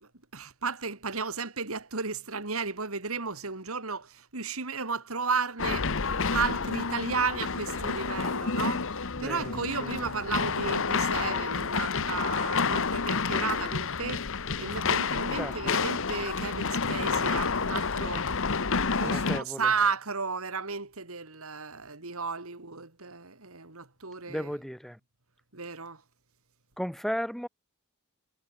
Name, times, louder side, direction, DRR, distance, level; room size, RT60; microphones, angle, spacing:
voice 1, 0.0-5.9 6.3-18.4 18.9-24.5 25.5-26.0, right 5 dB, 70° right, 2.9 m, -33 dB
sound 1, 5.6-19.4, left 5 dB, 65° left, 1.3 m, -29 dB
voice 2, 9.1-10.0 15.4-15.8 19.0-19.7 24.3-25.0 26.8-27.5, equal, ahead, 3.0 m, -35 dB
head